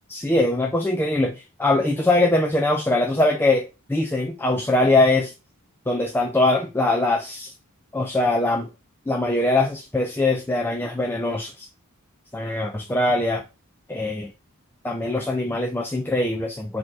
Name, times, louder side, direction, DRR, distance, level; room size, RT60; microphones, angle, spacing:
voice 1, 0.1-5.3 5.9-7.5 7.9-8.7 9.1-11.7 12.3-13.4 13.9-14.3 14.8-16.8, left 2 dB, 10° left, 2 dB, 0.4 m, -22 dB
4.4 x 2.9 x 3.8 m, 0.28 s
head